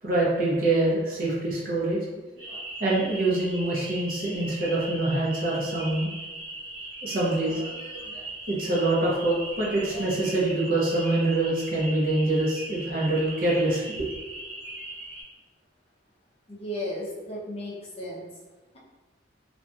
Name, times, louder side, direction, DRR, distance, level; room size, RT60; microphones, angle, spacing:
voice 1, 0.0-2.0 2.5-6.1 7.0-8.2 8.5-14.1, right 2 dB, 45° right, -5 dB, 0.7 m, -25 dB
sound 1, 2.4-15.2, right 2 dB, 65° right, 1.4 m, -39 dB
voice 2, 16.5-18.3, left 1 dB, 30° left, -6 dB, 0.6 m, -34 dB
2.8 x 2.5 x 2.3 m, 1.2 s
head